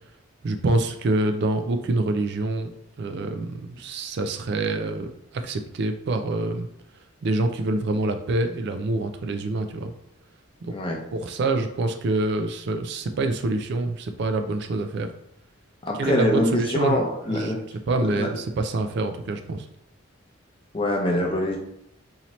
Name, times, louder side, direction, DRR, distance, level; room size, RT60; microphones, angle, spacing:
voice 1, 0.4-2.7 3.0-6.7 7.2-9.9 10.6-10.7 11.1-15.1 16.0-17.0 17.3-19.7, right 2 dB, 55° right, 7 dB, 0.4 m, -26 dB
voice 2, 10.7-11.0 15.8-17.6 18.1-18.3 20.7-21.6, left 1 dB, 25° left, 0 dB, 0.6 m, -24 dB
4.1 x 2.8 x 3.0 m, 0.78 s
head